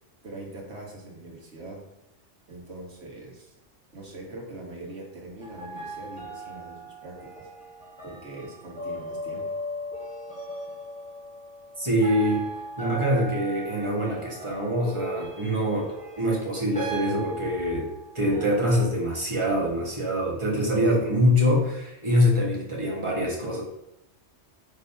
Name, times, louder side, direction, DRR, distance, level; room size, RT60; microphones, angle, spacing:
voice 1, 0.2-1.8 2.5-3.6 3.9-7.5 8.0-9.5, right 2 dB, 65° right, -1 dB, 1.8 m, -42 dB
sound 1, 5.4-18.9, right 1 dB, 5° left, 2.2 m, -38 dB
voice 2, 11.8-12.4 12.8-17.9 18.1-23.6, equal, 25° right, -3 dB, 1.7 m, -24 dB
5.2 x 4.0 x 5.6 m, 0.84 s
omnidirectional pair, 1.2 m